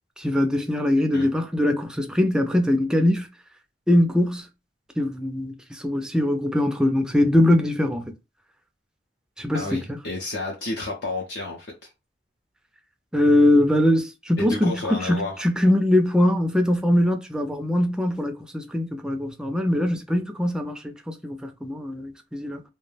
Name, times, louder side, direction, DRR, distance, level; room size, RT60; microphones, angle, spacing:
voice 1, 0.2-3.3 3.9-4.5 5.0-8.1 9.4-9.8 13.1-22.6, left 1 dB, 5° right, 0.3 m, -22 dB
voice 2, 9.5-11.9 14.4-15.4, left 2 dB, 65° left, 0.6 m, -31 dB
2.2 x 2.1 x 3.2 m
head